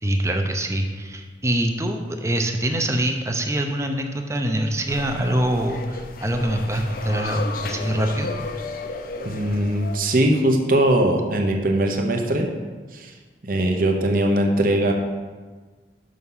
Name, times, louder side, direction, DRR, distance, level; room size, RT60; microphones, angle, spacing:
voice 1, 0.0-8.3, right 1 dB, 15° right, 4 dB, 0.6 m, -24 dB
sound 1, 4.9-10.0, left 3 dB, 55° left, 0.5 m, -33 dB
voice 2, 9.2-12.5 12.9-13.1 13.5-14.9, right 1 dB, 50° right, 2 dB, 0.9 m, -20 dB
6.4 x 5.6 x 5.5 m, 1.4 s
head